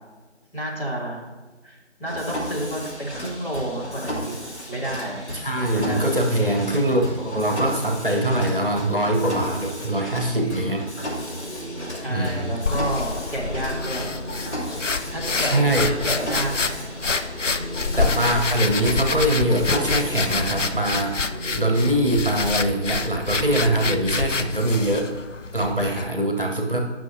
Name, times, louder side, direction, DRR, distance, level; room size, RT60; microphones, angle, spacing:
voice 1, 0.5-1.2 1.6-4.4 4.7-5.2 5.7-6.1 10.2-10.7 11.9-14.1 15.1-15.5 15.9-16.9, right 1 dB, 50° left, -5 dB, 2.8 m, -30 dB
Mechanisms, 2.1-21.1, equal, 65° left, 2.9 m, -34 dB
voice 2, 5.3-10.9 12.1-12.9 15.4-15.9 18.0-21.1 21.5-25.1 25.5-26.8, right 1 dB, 45° right, 2 dB, 1.2 m, -23 dB
sound 1, 8.6-24.7, equal, 15° right, 3.4 m, -39 dB
sound 2, 12.7-26.1, left 4 dB, 85° left, 0.7 m, -27 dB
18.0 x 6.2 x 2.7 m, 1.2 s
figure-of-eight pair, 175°, 36 cm